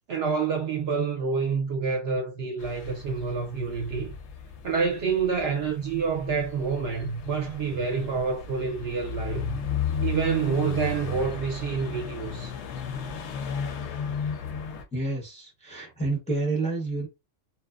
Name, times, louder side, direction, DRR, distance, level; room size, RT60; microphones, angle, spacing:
voice 1, 0.1-4.1 4.6-9.6 10.0-12.5, right 5 dB, 60° right, 0.8 m, -28 dB
sound 1, 2.6-14.8, left 5 dB, 65° left, 0.8 m, -34 dB
voice 2, 14.9-17.1, right 3 dB, 5° left, 0.7 m, -29 dB
2.7 x 2.0 x 2.3 m
omnidirectional pair, 1.3 m